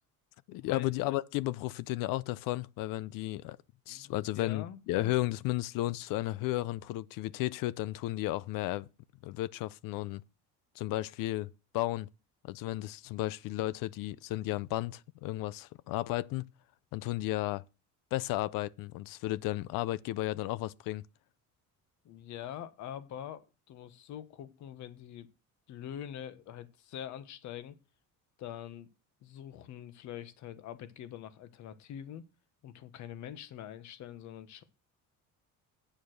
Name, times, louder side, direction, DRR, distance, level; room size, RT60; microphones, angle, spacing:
voice 1, 0.5-3.6 3.9-8.9 9.2-10.2 10.8-12.1 12.4-16.5 16.9-17.6 18.1-21.0, left 17 dB, 90° left, 0.6 m, -34 dB
voice 2, 3.9-4.8 22.0-25.3 25.7-27.8 28.4-28.9 29.2-32.3 32.6-34.6, left 10 dB, 60° left, 1.2 m, -44 dB
9.1 x 7.3 x 6.3 m
cardioid pair, 165°, 32 cm